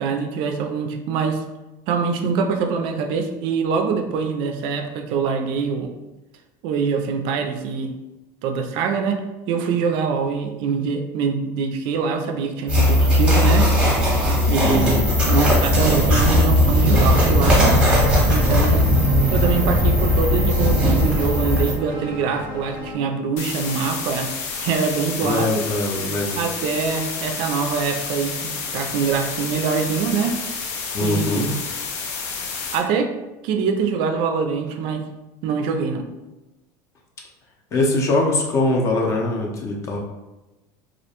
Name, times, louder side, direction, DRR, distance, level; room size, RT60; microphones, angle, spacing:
voice 1, 0.0-1.4 1.9-5.9 6.6-7.9 8.4-13.7 14.2-17.8 18.3-18.9 19.3-25.6 26.3-30.4 31.0-31.6 32.7-33.1 33.4-35.1 35.4-36.0, right 5 dB, 60° right, 5 dB, 0.3 m, -24 dB
sound 1, 12.7-21.7, left 1 dB, 10° right, 0.8 m, -17 dB
voice 2, 14.6-15.1 25.2-26.4 30.9-31.5 37.7-40.0, left 2 dB, 30° left, 0 dB, 0.5 m, -22 dB
sound 2, 17.4-22.9, left 2 dB, 60° left, 0.9 m, -35 dB
sound 3, 23.4-32.8, left 5 dB, 80° left, 0.5 m, -30 dB
2.3 x 2.1 x 2.8 m, 1.0 s
supercardioid pair, 140°, 9 cm